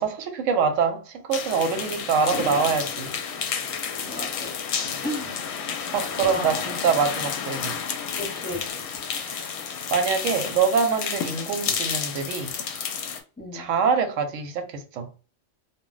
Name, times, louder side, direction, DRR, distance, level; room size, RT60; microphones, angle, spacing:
voice 1, 0.0-3.2 5.7-7.8 9.1-9.5 9.9-12.5 13.5-15.1, right 6 dB, 85° right, 1.0 m, -25 dB
sound 1, 1.3-13.2, left 7 dB, 65° left, 0.8 m, -31 dB
voice 2, 4.0-4.5 5.0-5.8 6.2-6.6 8.2-8.8 13.4-13.7, left 1 dB, 10° left, 0.7 m, -35 dB
2.2 x 2.1 x 3.7 m
omnidirectional pair, 1.3 m